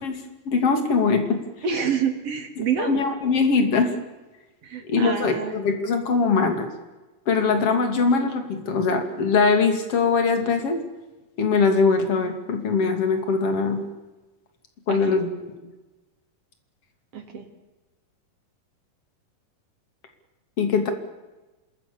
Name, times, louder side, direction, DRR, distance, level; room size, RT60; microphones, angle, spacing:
voice 1, 0.4-1.4 2.9-3.9 4.9-6.7 7.3-10.8 11.4-13.8 14.9-15.3 20.6-20.9, left 4 dB, 40° left, 6 dB, 3.2 m, -21 dB
voice 2, 1.6-3.1 4.6-5.6 14.9-15.2 17.1-17.5, right 6 dB, 45° right, 7 dB, 2.8 m, -27 dB
26.5 x 21.5 x 7.1 m, 1.1 s
omnidirectional pair, 4.6 m